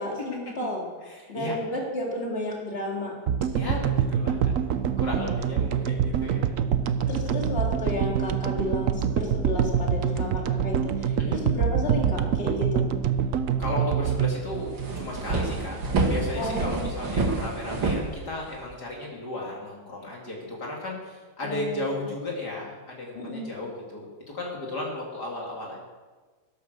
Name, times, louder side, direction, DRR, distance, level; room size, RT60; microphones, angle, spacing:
voice 1, 0.0-0.9 1.3-3.1 7.1-12.9 16.3-16.8 21.4-22.1 23.1-23.4, left 1 dB, 30° left, -2 dB, 3.1 m, -32 dB
voice 2, 1.0-1.6 3.5-4.5 5.0-6.5 11.2-11.4 13.6-24.1 24.3-25.8, left 2 dB, 55° left, -2 dB, 3.0 m, -35 dB
sound 1, 3.3-15.6, right 8 dB, 65° right, 0.8 m, -25 dB
sound 2, 14.5-18.7, right 3 dB, 80° right, 2.9 m, -28 dB
12.5 x 11.5 x 6.7 m, 1.4 s
omnidirectional pair, 2.1 m